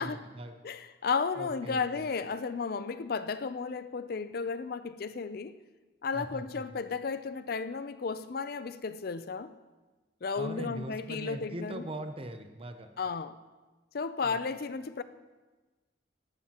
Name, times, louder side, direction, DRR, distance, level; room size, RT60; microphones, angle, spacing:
voice 1, 0.0-0.5 1.4-2.0 6.1-6.8 10.3-12.9 14.2-14.4, right 1 dB, 30° right, 0.6 m, -41 dB
voice 2, 0.6-5.6 6.0-9.5 10.2-11.8 13.0-13.4 13.9-15.0, left 5 dB, 55° left, 0.5 m, -33 dB
14.5 x 12.0 x 2.9 m
head